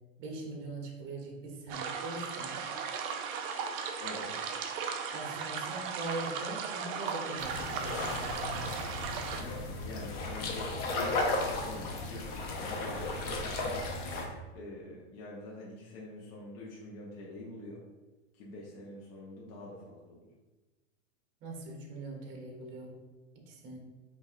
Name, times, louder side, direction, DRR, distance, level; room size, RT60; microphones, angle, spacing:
voice 1, 0.2-2.6 5.1-8.8 21.4-23.0 23.5-23.8, right 2 dB, 30° right, 0 dB, 0.9 m, -42 dB
sound 1, 1.7-9.4, right 6 dB, 50° right, 0.5 m, -37 dB
voice 2, 4.0-4.5 9.3-13.8 14.5-17.8 18.3-20.3, left 2 dB, 50° left, -4 dB, 0.9 m, -46 dB
sound 2, 7.4-14.3, left 2 dB, 25° left, 0.5 m, -35 dB
5.2 x 2.7 x 2.5 m, 1.2 s
hypercardioid pair, 135°, 37 cm